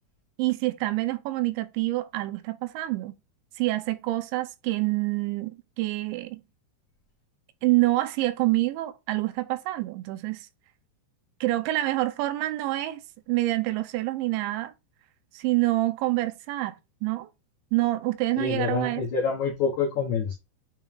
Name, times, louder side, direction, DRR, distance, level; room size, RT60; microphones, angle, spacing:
voice 1, 0.4-3.1 3.6-6.4 7.6-10.5 11.4-13.0 13.3-14.7 15.3-17.3 17.7-19.0, right 18 dB, 85° right, 2.9 m, -27 dB
voice 2, 18.4-20.3, left 5 dB, 80° left, 1.6 m, -27 dB
9.0 x 3.1 x 3.6 m
omnidirectional pair, 5.2 m